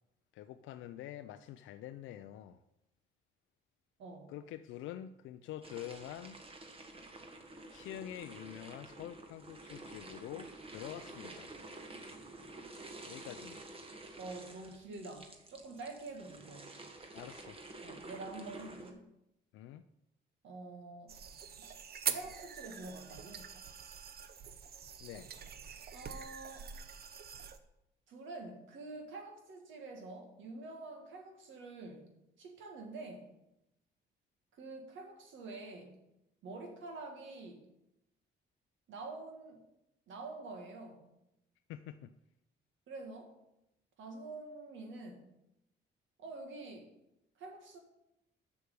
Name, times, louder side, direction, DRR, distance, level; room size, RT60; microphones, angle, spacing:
voice 1, 0.3-2.6 4.3-6.4 7.7-11.5 13.0-13.6 17.1-17.6 19.5-19.8 25.0-25.3 41.7-42.1, left 12 dB, 85° left, 0.4 m, -46 dB
voice 2, 4.0-4.3 14.2-16.7 17.8-19.0 20.4-21.2 21.6-21.8 22.1-23.5 25.9-26.7 28.1-32.1 32.4-33.4 34.6-36.0 36.4-37.7 38.9-39.6 40.1-41.1 42.9-43.3 44.0-45.3 46.2-46.9 47.4-47.8, right 3 dB, 75° right, 1.9 m, -47 dB
sound 1, 5.6-18.9, right 2 dB, 30° right, 1.4 m, -50 dB
Appliances - Fridge - Portable, 21.1-27.6, right 7 dB, 50° right, 0.7 m, -43 dB
6.9 x 6.3 x 6.7 m
cardioid pair, 90°, 20 cm